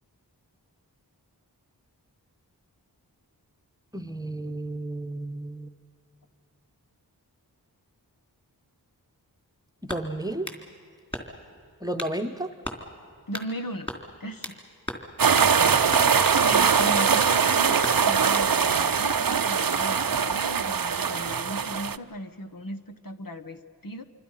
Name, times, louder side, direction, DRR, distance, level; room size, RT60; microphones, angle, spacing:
voice 1, 3.9-5.7 9.8-10.5 11.8-12.5 15.6-15.8, right 1 dB, 10° right, 8 dB, 1.1 m, -32 dB
sound 1, 9.9-10.6 11.1-11.5 12.0-12.2 12.6-12.8 13.3-13.5 13.9-14.6 14.9-15.1 15.4-15.5 15.9-16.4 16.8-17.4 17.8-18.5, left 1 dB, 15° left, 3.5 m, -36 dB
voice 2, 13.3-13.9 14.2-14.6 16.3-24.0, equal, 55° left, 6 dB, 1.3 m, -37 dB
sound 2, 15.2-22.0, right 6 dB, 55° right, 0.7 m, -22 dB
27.0 x 24.5 x 5.7 m, 2.3 s
wide cardioid pair, 50°, 40 cm